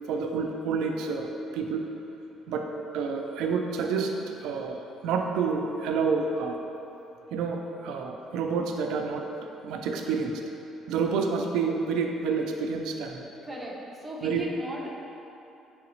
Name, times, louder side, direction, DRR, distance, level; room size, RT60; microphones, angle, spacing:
voice 1, 0.1-1.9 2.5-2.6 2.9-4.8 5.0-6.6 7.3-9.2 9.6-10.4 10.9-13.2 14.2-14.4, right 5 dB, 80° right, 2 dB, 0.3 m, -29 dB
voice 2, 13.4-14.9, equal, 10° right, -4 dB, 0.5 m, -37 dB
4.8 x 3.2 x 3.0 m, 2.9 s
cardioid pair, 170°, 0 cm